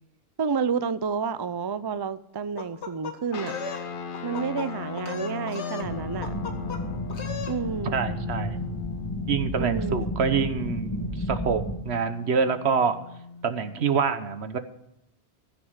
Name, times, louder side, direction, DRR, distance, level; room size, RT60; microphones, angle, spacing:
voice 1, 0.4-3.6 4.2-6.4 7.5-8.0 9.6-10.1, right 6 dB, 40° right, 0.3 m, -30 dB
sound 1, 2.6-3.8 4.1-4.7 5.0-5.9 6.2-6.8 7.1-7.6, left 5 dB, 75° left, 1.7 m, -36 dB
sound 2, 3.3-14.0, left 5 dB, 50° left, 1.0 m, -37 dB
sound 3, 5.8-11.8, left 1 dB, 20° left, 2.0 m, -33 dB
voice 2, 7.9-8.6 9.3-13.0 13.4-14.6, right 6 dB, 70° right, 1.3 m, -26 dB
15.0 x 6.4 x 9.6 m
omnidirectional pair, 1.1 m